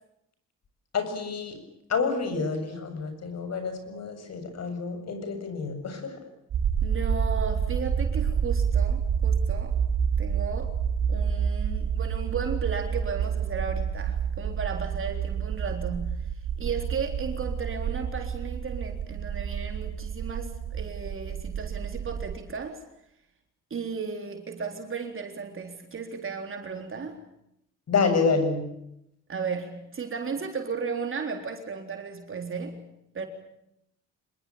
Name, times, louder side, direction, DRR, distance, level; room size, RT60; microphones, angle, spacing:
voice 1, 0.9-1.6 1.9-6.2 27.9-28.7, left 4 dB, 60° left, 8 dB, 7.6 m, -28 dB
sound 1, 6.5-22.4, right 7 dB, 65° right, 5.6 m, -28 dB
voice 2, 6.8-9.8 10.2-10.7 11.1-16.1 16.6-22.8 23.7-27.2 29.3-32.8 33.1-33.3, right 5 dB, 45° right, 4 dB, 3.8 m, -35 dB
26.0 x 22.0 x 8.7 m, 0.80 s
cardioid pair, 90°, 30 cm